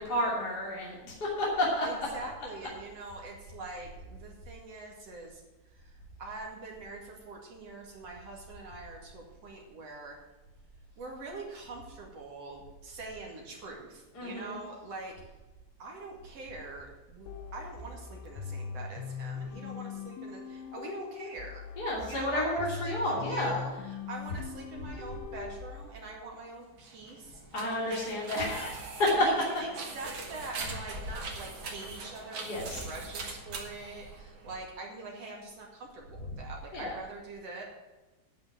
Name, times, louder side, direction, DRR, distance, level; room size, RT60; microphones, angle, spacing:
voice 1, 0.0-2.1 14.1-14.6 21.8-23.6 27.5-29.3 32.5-32.8 36.7-37.0, left 1 dB, 25° left, -4 dB, 2.5 m, -30 dB
voice 2, 1.8-5.4 5.7-10.2 11.0-15.2 15.8-21.6 22.1-28.6 29.1-29.7 29.9-37.6, right 2 dB, 45° right, -1 dB, 2.3 m, -44 dB
sound 1, 17.3-25.9, left 6 dB, 90° left, 3.6 m, -41 dB
sound 2, 26.8-34.7, right 3 dB, 70° right, 1.2 m, -42 dB
11.5 x 6.0 x 9.0 m, 1.1 s
omnidirectional pair, 5.5 m